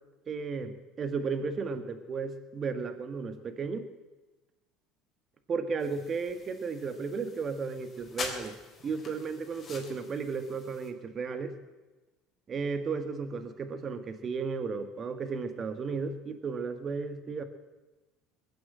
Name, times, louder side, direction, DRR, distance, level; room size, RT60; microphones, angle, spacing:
voice 1, 0.3-3.9 5.5-8.6 8.8-11.5 12.5-17.4, right 5 dB, 40° right, 9 dB, 1.9 m, -34 dB
sound 1, 5.8-10.9, left 4 dB, 35° left, 3.5 m, -44 dB
21.0 x 8.1 x 7.6 m, 1.2 s
hypercardioid pair, 70°, 0 cm